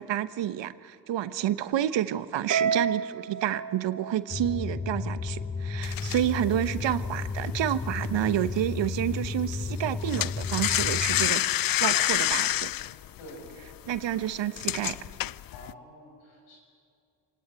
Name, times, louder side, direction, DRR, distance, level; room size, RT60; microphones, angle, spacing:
voice 1, 0.0-11.4 11.8-12.7 13.9-15.0, right 12 dB, 60° right, 13 dB, 1.1 m, -29 dB
Harp, 2.5-5.0, right 6 dB, 40° right, 0.8 m, -30 dB
sound 1, 4.3-11.3, left 4 dB, 15° left, 0.7 m, -33 dB
sound 2, 5.8-8.6 8.8-9.1 9.4-15.7, left 13 dB, 45° left, 0.6 m, -28 dB
voice 2, 13.2-13.5 15.5-16.6, left 1 dB, 85° left, 0 dB, 7.0 m, -47 dB
27.0 x 19.0 x 9.0 m, 2.4 s
hypercardioid pair, 45°, 48 cm